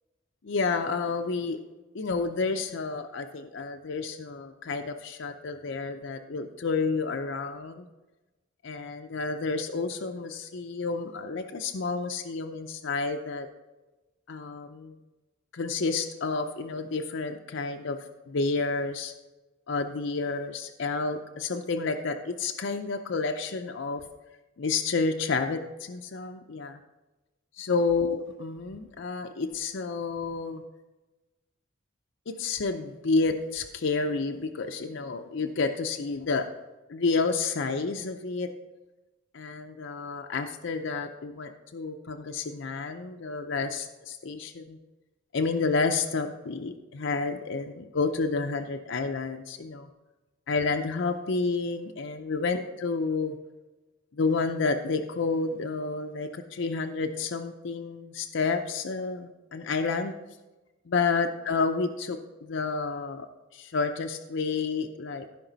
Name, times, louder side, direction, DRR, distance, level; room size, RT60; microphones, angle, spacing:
voice 1, 0.4-1.6 1.9-7.9 8.6-13.5 14.3-15.0 15.5-18.0 18.3-19.1 19.7-24.0 24.6-26.8 27.6-30.6 32.4-36.5 36.9-38.5 39.3-44.8 45.3-49.9 50.5-53.3 54.1-60.1 60.9-63.3 63.5-65.3, left 4 dB, 65° left, 5 dB, 0.6 m, -30 dB
15.5 x 5.3 x 4.0 m, 1.1 s
head